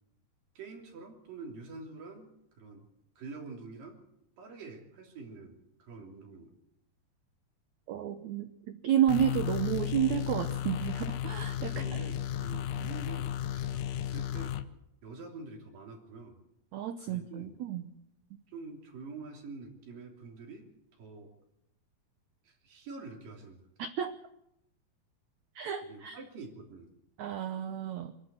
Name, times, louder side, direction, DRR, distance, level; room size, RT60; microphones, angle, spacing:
voice 1, 0.6-2.9 3.2-4.0 4.4-6.5 11.7-14.6 15.0-16.4 17.0-17.6 18.5-20.7 21.0-21.3 22.4-23.6 25.8-26.9, right 3 dB, 60° right, 1 dB, 4.7 m, -46 dB
voice 2, 7.9-8.5 8.8-11.8 12.8-12.9 16.7-17.8 23.8-24.1 25.5-26.2 27.2-28.1, right 10 dB, 85° right, 9 dB, 1.6 m, -31 dB
sound 1, 9.1-14.6, left 10 dB, 75° left, 1.9 m, -34 dB
26.5 x 12.0 x 8.3 m, 0.81 s
omnidirectional pair, 4.5 m